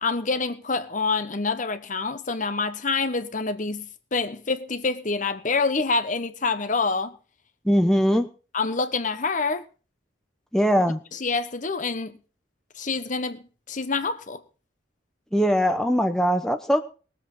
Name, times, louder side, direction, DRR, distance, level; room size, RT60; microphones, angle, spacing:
voice 1, 0.0-3.9 4.1-7.2 8.5-9.6 11.1-12.2 12.8-14.4, left 4 dB, 40° left, 1.0 m, -26 dB
voice 2, 7.6-8.3 10.5-11.0 15.3-16.8, equal, 5° left, 0.9 m, -21 dB
20.0 x 7.8 x 5.5 m
head